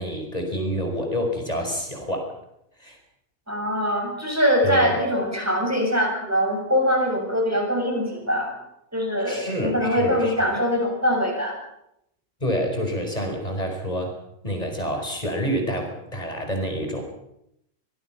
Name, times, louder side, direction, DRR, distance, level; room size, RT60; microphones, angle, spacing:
voice 1, 0.0-2.3 2.8-3.0 4.6-5.0 9.3-10.5 12.4-14.1 14.4-17.0, equal, 20° left, 3 dB, 5.0 m, -28 dB
voice 2, 3.5-8.5 8.9-11.6, equal, 10° right, 1 dB, 7.1 m, -23 dB
25.0 x 20.0 x 5.9 m, 0.79 s
omnidirectional pair, 1.7 m